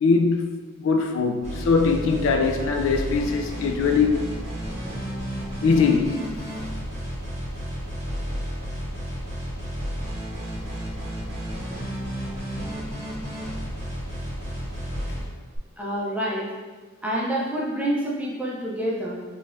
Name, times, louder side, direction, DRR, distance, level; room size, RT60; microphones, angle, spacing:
voice 1, 0.0-4.3 5.6-6.3, left 4 dB, 65° left, 0.3 m, -22 dB
sound 1, 1.4-15.6, equal, 30° right, 1.0 m, -32 dB
voice 2, 15.8-16.5 17.0-19.2, right 1 dB, 5° right, 0.5 m, -27 dB
5.1 x 2.3 x 2.6 m
head